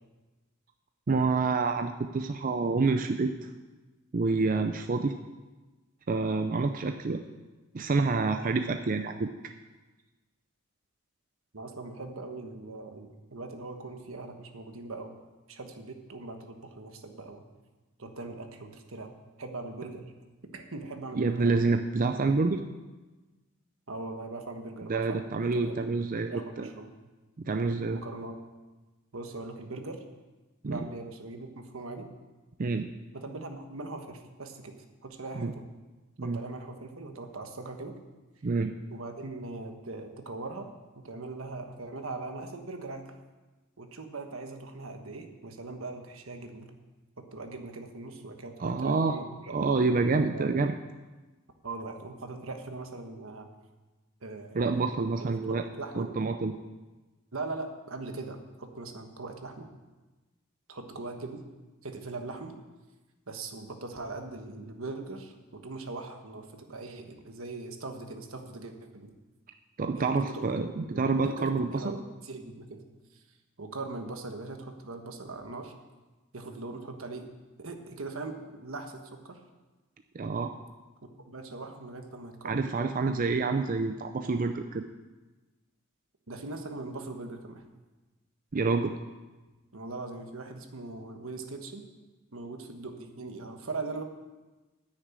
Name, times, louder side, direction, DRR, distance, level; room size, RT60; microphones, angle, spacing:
voice 1, 1.1-3.5 4.1-5.1 6.1-7.2 7.7-9.3 21.2-22.6 24.9-26.7 27.4-28.0 30.6-30.9 32.6-32.9 35.3-35.5 36.2-36.4 38.4-38.7 48.6-49.2 49.5-50.7 54.5-55.6 56.0-56.5 69.8-72.0 80.1-80.6 82.4-84.8 88.5-88.9, right 3 dB, 40° right, 6 dB, 0.5 m, -27 dB
voice 2, 11.5-15.1 15.5-17.4 18.0-19.1 19.4-20.0 20.5-21.7 23.9-25.8 26.3-26.9 27.8-28.4 29.1-30.0 30.7-32.1 33.1-34.7 35.0-35.7 36.2-37.9 38.9-40.7 40.9-43.2 43.8-46.7 47.3-49.6 50.3-50.5 51.6-53.5 54.2-54.6 55.2-56.1 57.3-59.7 60.7-61.4 61.8-62.6 63.3-69.1 70.0-72.8 73.1-73.2 73.6-75.7 76.3-77.3 77.6-79.4 81.0-82.7 86.3-87.6 89.7-91.9 92.3-94.0, right 3 dB, 80° right, 5 dB, 1.3 m, -40 dB
9.8 x 6.5 x 8.9 m, 1.2 s
head